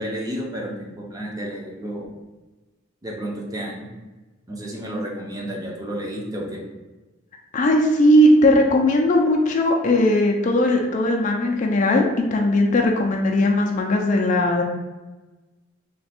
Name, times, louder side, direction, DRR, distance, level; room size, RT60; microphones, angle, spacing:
voice 1, 0.0-2.1 3.0-3.9 4.5-6.6, right 1 dB, 20° right, -1 dB, 0.5 m, -31 dB
voice 2, 7.5-14.6, left 1 dB, 35° left, 1 dB, 0.3 m, -18 dB
3.3 x 2.2 x 4.2 m, 1.2 s
head